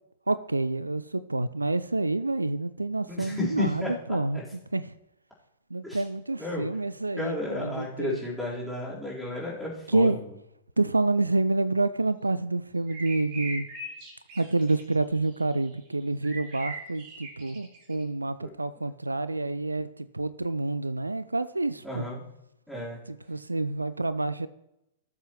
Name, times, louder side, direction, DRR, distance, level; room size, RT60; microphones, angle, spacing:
voice 1, 0.3-4.4 4.7-4.9 5.7-8.2 9.9-10.2 10.8-13.7 14.4-22.1 23.1-24.5, right 2 dB, 80° right, 16 dB, 0.4 m, -28 dB
voice 2, 3.1-3.9 4.3-4.4 5.8-6.0 6.4-6.7 7.2-10.1 18.4-18.5 21.8-22.2 22.7-23.0, left 2 dB, ahead, -7 dB, 4.1 m, -33 dB
sound 1, 12.9-15.8 16.2-18.0, right 2 dB, 40° right, 3.2 m, -40 dB
18.0 x 7.2 x 3.1 m, 0.86 s
figure-of-eight pair, 105°, 0 cm